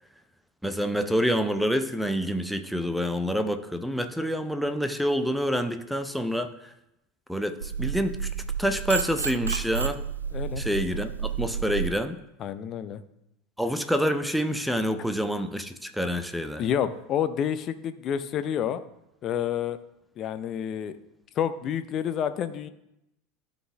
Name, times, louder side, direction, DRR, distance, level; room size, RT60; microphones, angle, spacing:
voice 1, 0.6-6.7 7.3-8.3 8.6-10.0 10.6-12.2 13.6-16.6, equal, ahead, 9 dB, 0.7 m, -27 dB
sound 1, 7.6-11.9, right 7 dB, 75° right, 0.3 m, -31 dB
voice 2, 10.3-10.6 12.4-13.0 16.6-18.8 19.2-19.8 20.2-20.9 21.4-22.7, left 9 dB, 40° left, 12 dB, 0.6 m, -29 dB
12.5 x 4.2 x 3.4 m, 0.84 s
figure-of-eight pair, 75°, 0 cm